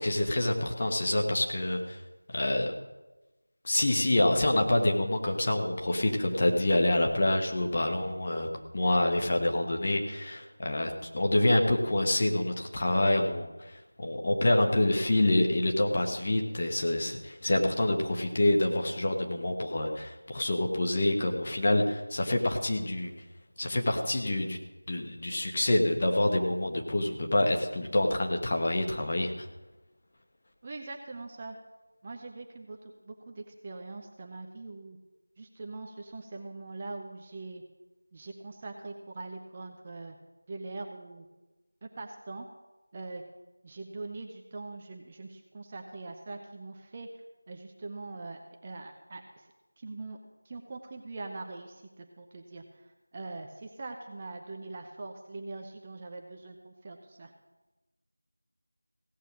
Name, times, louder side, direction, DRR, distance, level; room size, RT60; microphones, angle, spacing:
voice 1, 0.0-2.0 2.3-2.7 3.6-8.5 8.7-23.1 23.6-24.6 24.9-29.5, left 1 dB, 30° left, 1 dB, 1.4 m, -27 dB
voice 2, 30.6-31.6 32.0-35.0 35.4-37.6 38.1-40.2 40.5-41.3 41.8-42.5 42.9-43.2 43.6-47.1 47.5-49.5 49.8-50.2 50.4-57.3, right 3 dB, 20° right, 3 dB, 0.7 m, -42 dB
16.5 x 6.8 x 7.5 m, 1.1 s
figure-of-eight pair, 170°, 0 cm